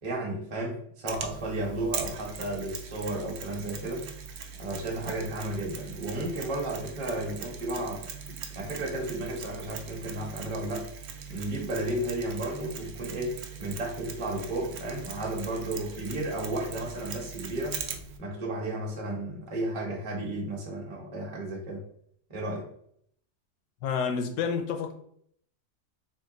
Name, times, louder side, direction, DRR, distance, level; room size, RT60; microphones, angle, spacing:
voice 1, 0.0-4.1 4.6-8.1 8.5-10.9 11.3-17.8 18.2-21.8 22.3-22.7, right 1 dB, 25° right, 0.7 m, -33 dB
Mechanisms, 1.1-18.2, right 6 dB, 75° right, 0.7 m, -41 dB
voice 2, 23.8-24.9, left 6 dB, 75° left, 1.1 m, -29 dB
3.6 x 2.2 x 3.8 m
omnidirectional pair, 1.8 m